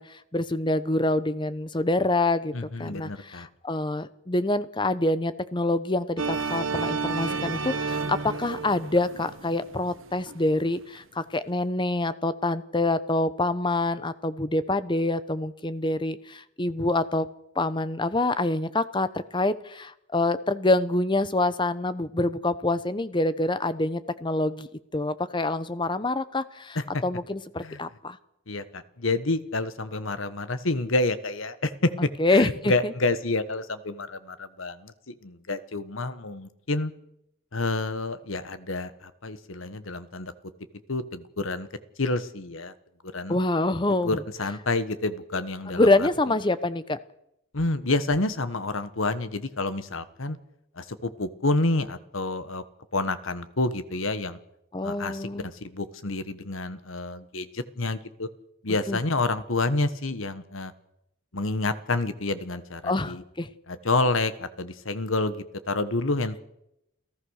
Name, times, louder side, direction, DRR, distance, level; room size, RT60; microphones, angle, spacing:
voice 1, 0.0-2.5 2.8-17.3 17.6-24.7 24.9-26.8 27.0-28.2 32.2-32.9 43.3-44.2 45.7-47.0 54.7-55.4 58.9-59.0 62.8-63.5, left 2 dB, 25° left, 14 dB, 0.9 m, -26 dB
voice 2, 2.5-3.5 26.7-27.0 27.6-27.8 28.5-36.9 37.5-40.3 40.9-41.7 42.0-42.7 43.0-43.4 44.0-46.1 47.5-50.4 50.8-52.6 52.9-54.4 54.8-58.3 58.6-60.7 61.3-63.2 63.7-66.4, left 2 dB, 70° left, 12 dB, 1.4 m, -28 dB
sound 1, 6.2-10.6, right 4 dB, 70° right, 1.2 m, -31 dB
28.5 x 15.0 x 6.5 m, 0.82 s
head